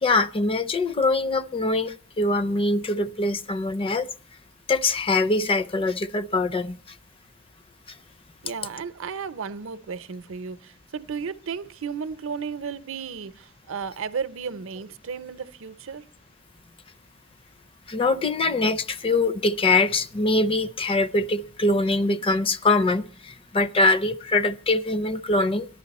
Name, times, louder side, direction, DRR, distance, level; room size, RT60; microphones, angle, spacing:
voice 1, 0.0-4.1 4.7-6.8 17.9-25.7, left 2 dB, 25° left, 0.5 m, -23 dB
voice 2, 8.4-16.1, right 6 dB, 65° right, 0.6 m, -34 dB
14.0 x 11.0 x 4.1 m
head